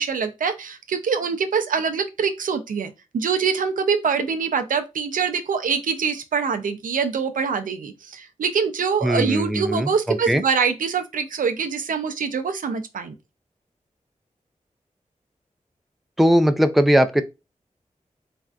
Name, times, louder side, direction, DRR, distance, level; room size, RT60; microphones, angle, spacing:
voice 1, 0.0-13.1, right 6 dB, 80° right, 0.4 m, -24 dB
voice 2, 9.0-10.4 16.2-17.2, equal, ahead, 0.3 m, -19 dB
3.3 x 2.5 x 2.3 m
cardioid pair, 55°, 14 cm